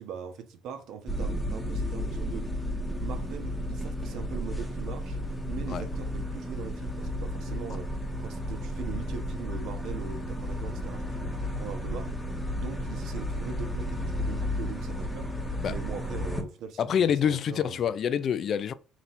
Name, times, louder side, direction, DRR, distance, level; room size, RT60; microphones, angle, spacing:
voice 1, 0.0-2.5 3.0-5.2 5.5-12.1 12.5-15.3 15.7-17.9, right 7 dB, 70° right, 0.7 m, -41 dB
sound 1, 1.1-16.4, equal, 5° left, 0.9 m, -33 dB
voice 2, 16.8-18.7, left 8 dB, 50° left, 0.3 m, -26 dB
4.1 x 2.3 x 4.1 m
cardioid pair, 110°, 0 cm